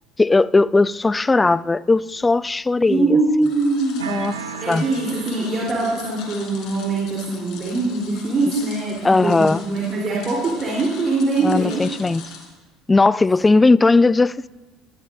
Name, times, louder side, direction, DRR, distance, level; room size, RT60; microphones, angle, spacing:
voice 1, 0.2-3.2 4.1-4.4 4.6-4.9 9.0-9.6 11.4-12.2 12.9-14.5, left 3 dB, 15° left, 0.3 m, -17 dB
voice 2, 2.9-4.0 4.6-11.8, right 3 dB, 35° right, 3.6 m, -22 dB
sound 1, 3.4-12.5, left 6 dB, 55° left, 3.4 m, -41 dB
sound 2, 4.0-5.9, right 7 dB, 80° right, 0.8 m, -34 dB
19.0 x 14.5 x 2.6 m
hypercardioid pair, 65°, 0 cm